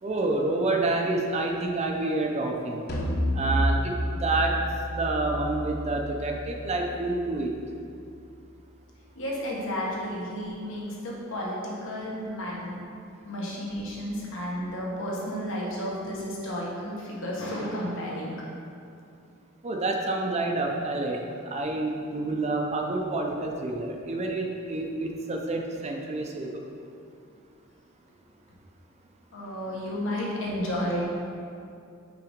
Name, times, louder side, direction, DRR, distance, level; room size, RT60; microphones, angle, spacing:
voice 1, 0.0-2.9 3.4-4.6 4.9-7.5 19.6-21.2 21.5-26.6, right 2 dB, 30° right, 2 dB, 0.5 m, -28 dB
sound 1, 2.9-8.3, equal, 45° left, 0.7 m, -31 dB
voice 2, 9.1-12.8 13.2-18.4 29.3-31.0, equal, 65° left, -4 dB, 1.3 m, -32 dB
5.7 x 3.9 x 5.1 m, 2.5 s
head